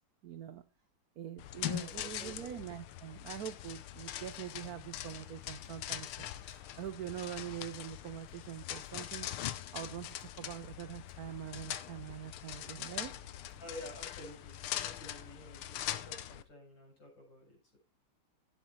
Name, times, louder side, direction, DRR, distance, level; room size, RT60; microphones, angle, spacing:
voice 1, 0.2-0.6 1.2-13.2, right 10 dB, 80° right, 12 dB, 0.8 m, -44 dB
sound 1, 1.4-16.4, left 12 dB, 85° left, 1.6 m, -42 dB
voice 2, 1.7-2.5 13.6-17.8, left 1 dB, 60° left, 1 dB, 5.7 m, -51 dB
11.5 x 8.8 x 3.2 m, 0.27 s
omnidirectional pair, 2.3 m